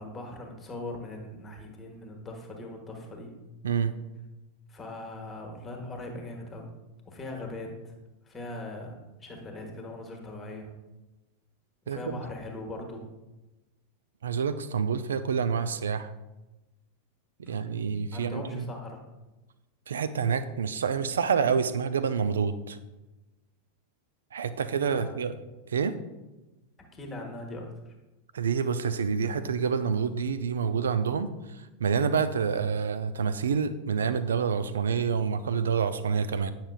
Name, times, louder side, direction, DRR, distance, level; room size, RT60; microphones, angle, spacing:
voice 1, 0.0-3.3 4.7-6.7 7.0-7.9 8.2-10.7 11.8-13.0 17.4-17.9 18.1-19.0 24.9-25.1 26.9-27.9, left 2 dB, 20° left, 2 dB, 1.2 m, -40 dB
voice 2, 11.9-12.2 14.2-16.1 17.4-18.7 19.9-22.8 24.3-25.3 25.7-26.0 28.3-36.5, right 6 dB, 65° right, 12 dB, 0.3 m, -28 dB
8.7 x 5.8 x 2.3 m, 1.1 s
figure-of-eight pair, 90°, 0 cm